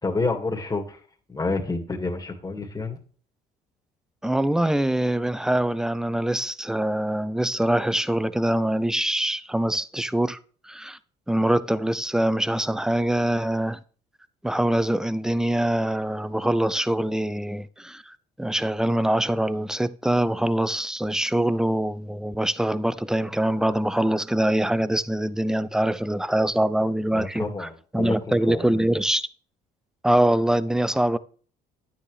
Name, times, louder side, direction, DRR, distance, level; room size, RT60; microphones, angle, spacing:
voice 1, 0.0-1.0 1.3-3.0 27.1-28.8, left 3 dB, 20° left, 2.1 m, -29 dB
voice 2, 4.2-10.4 10.7-11.0 11.3-13.8 14.4-18.1 18.4-27.7 27.9-29.2 30.0-31.2, right 1 dB, 5° right, 0.5 m, -24 dB
9.8 x 9.2 x 3.3 m
supercardioid pair, 80°, 19 cm